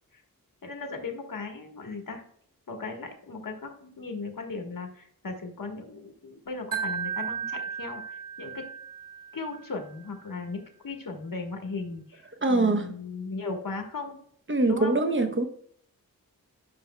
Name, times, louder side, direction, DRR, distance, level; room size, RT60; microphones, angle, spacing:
voice 1, 0.6-2.2 2.7-8.7 9.3-14.2 14.7-14.9, left 4 dB, 65° left, 1.5 m, -37 dB
Wind chime, 6.7-9.8, right 7 dB, 60° right, 1.5 m, -35 dB
voice 2, 12.4-12.9 14.5-15.4, right 2 dB, 35° right, 0.9 m, -23 dB
10.5 x 6.2 x 2.2 m
wide cardioid pair, 85°, 36 cm